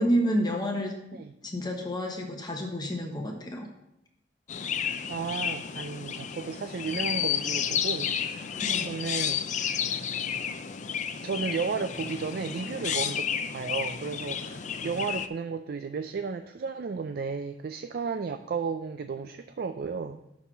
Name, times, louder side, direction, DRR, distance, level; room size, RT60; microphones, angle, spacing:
voice 1, 0.0-0.9 1.4-3.7 8.6-8.9, equal, 25° left, 1 dB, 1.0 m, -29 dB
Chirp tweet, 4.5-15.3, left 8 dB, 40° left, 0.4 m, -31 dB
voice 2, 5.1-8.5 8.8-10.0 11.2-20.2, right 5 dB, 55° right, 9 dB, 0.4 m, -34 dB
6.2 x 5.7 x 6.1 m, 0.85 s
head